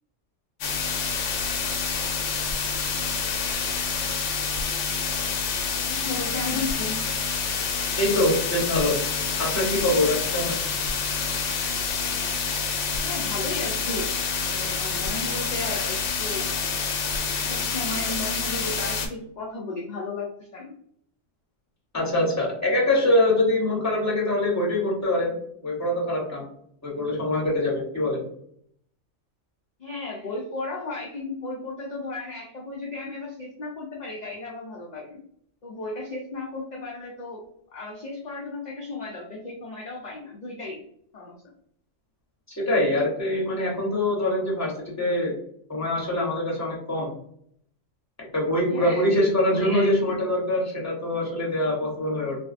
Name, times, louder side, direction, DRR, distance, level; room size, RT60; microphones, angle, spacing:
sound 1, 0.6-19.1, left 5 dB, 75° left, 0.9 m, -27 dB
voice 1, 5.9-7.0 13.0-14.1 14.4-16.5 17.4-20.7 29.8-35.2 35.6-40.8 41.1-41.3 48.7-49.1 49.5-50.2, left 2 dB, 50° left, -3 dB, 0.5 m, -34 dB
voice 2, 8.0-9.0 9.4-10.6 21.9-25.3 25.6-26.4 26.8-28.2 42.5-45.3 45.7-47.1 48.3-52.4, left 1 dB, 15° left, -3 dB, 0.9 m, -24 dB
3.4 x 2.1 x 2.4 m, 0.68 s
omnidirectional pair, 1.2 m